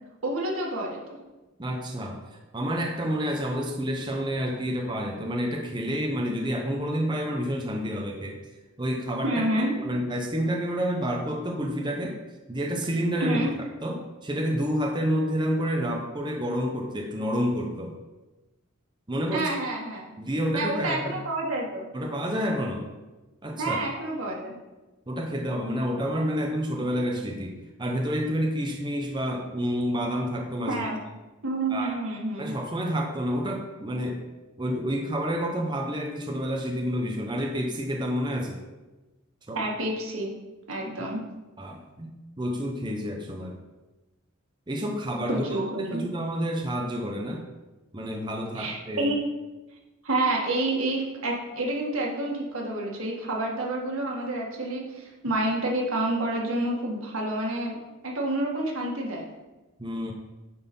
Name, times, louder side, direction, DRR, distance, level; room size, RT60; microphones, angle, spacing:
voice 1, 0.2-1.2 9.2-9.7 13.2-13.5 19.3-20.1 20.5-21.9 23.6-24.6 30.7-31.0 31.4-32.5 39.5-40.3 40.7-41.2 45.3-46.0 48.5-49.2 50.0-57.8 58.0-59.3, right 2 dB, 85° right, -1 dB, 1.8 m, -28 dB
voice 2, 1.6-8.4 8.8-12.2 12.5-13.4 13.8-17.9 19.1-19.5 20.2-21.2 21.9-22.9 23.4-23.8 25.1-30.8 31.7-32.0 32.4-34.2 34.6-38.6 39.5-39.6 41.6-43.6 44.7-47.4 47.9-49.1 59.8-60.1, equal, 20° right, 1 dB, 0.8 m, -29 dB
9.7 x 4.1 x 5.4 m, 1.1 s
head